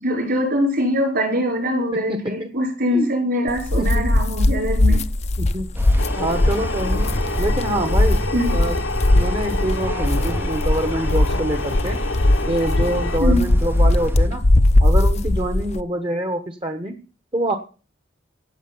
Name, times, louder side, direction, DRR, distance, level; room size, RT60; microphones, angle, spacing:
voice 1, 0.0-5.0 8.3-8.6 13.2-13.5, equal, 55° right, 3 dB, 5.3 m, -22 dB
voice 2, 1.9-2.5 2.9-3.2 3.8-4.1 4.9-5.0 5.4-5.7 6.1-7.1 7.4-8.2 8.5-8.8 9.1-12.0 12.5-14.4 14.8-17.0 17.3-17.6, right 1 dB, 25° right, 7 dB, 1.3 m, -25 dB
sound 1, 3.5-15.8, left 1 dB, 35° left, 0.7 m, -19 dB
sound 2, 5.7-14.3, equal, 10° right, 0.6 m, -28 dB
sound 3, 6.0-13.2, left 3 dB, 85° left, 1.3 m, -29 dB
17.0 x 6.5 x 7.1 m, 0.36 s
head